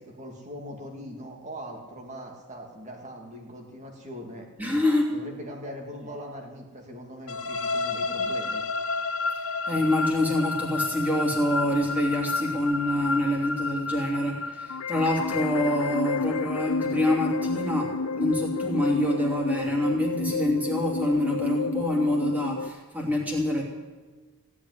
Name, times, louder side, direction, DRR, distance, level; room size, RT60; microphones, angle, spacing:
voice 1, 0.0-4.5 5.1-8.6, equal, 30° right, 1 dB, 2.4 m, -41 dB
voice 2, 4.6-5.1 9.7-23.6, left 1 dB, 5° right, -2 dB, 2.9 m, -26 dB
sound 1, 7.3-15.1, left 4 dB, 70° left, 2.1 m, -31 dB
sound 2, 14.7-22.7, left 4 dB, 85° left, 0.5 m, -30 dB
16.5 x 8.6 x 9.6 m, 1.3 s
head